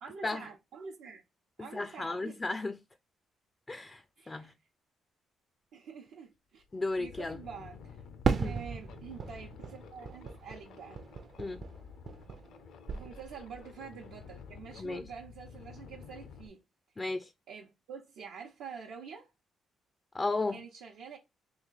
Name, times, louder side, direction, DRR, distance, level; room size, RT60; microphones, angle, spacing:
voice 1, 0.0-1.2 1.6-2.4 4.2-4.5 5.7-8.0 8.4-11.0 12.9-16.6 17.5-19.3 20.5-21.2, right 6 dB, 85° right, 0.9 m, -47 dB
voice 2, 1.7-2.8 3.7-4.5 6.7-7.4 8.4-8.5 11.4-11.6 14.8-15.1 17.0-17.3 20.1-20.6, left 3 dB, 25° left, 0.4 m, -34 dB
sound 1, 6.1-6.2 6.6-16.5, left 6 dB, 75° left, 0.6 m, -51 dB
Fireworks, 8.2-12.6 12.9-13.7, right 5 dB, 50° right, 0.5 m, -36 dB
3.1 x 3.1 x 4.0 m
cardioid pair, 90°, 0 cm